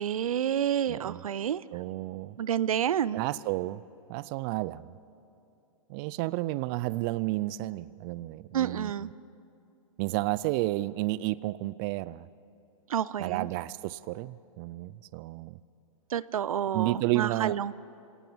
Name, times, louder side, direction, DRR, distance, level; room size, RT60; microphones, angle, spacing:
voice 1, 0.0-1.6 2.4-3.2 8.5-9.1 12.9-13.5 16.1-17.7, right 9 dB, 80° right, 19 dB, 0.6 m, -29 dB
voice 2, 0.9-1.2 1.7-2.4 3.1-3.8 4.1-4.9 5.9-9.1 10.0-12.3 13.2-15.6 16.7-17.6, right 18 dB, 40° right, 18 dB, 0.5 m, -31 dB
27.5 x 18.0 x 7.2 m, 2.7 s
hypercardioid pair, 125°, 18 cm